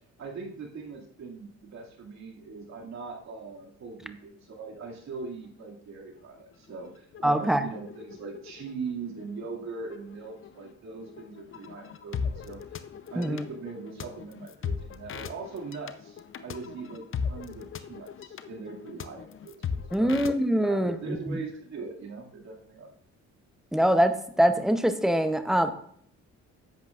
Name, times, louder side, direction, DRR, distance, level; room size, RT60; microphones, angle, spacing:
voice 1, 0.2-12.8 13.1-20.2 20.6-22.9, right 4 dB, 65° right, -2 dB, 2.4 m, -41 dB
sound 1, 4.9-5.0 5.2-5.7 6.1-20.3, left 6 dB, 45° left, 0.7 m, -39 dB
voice 2, 7.2-7.6 13.2-13.4 19.9-21.4 23.7-25.7, equal, ahead, 8 dB, 0.8 m, -24 dB
10.5 x 8.1 x 2.5 m, 0.64 s
cardioid pair, 90°, 30 cm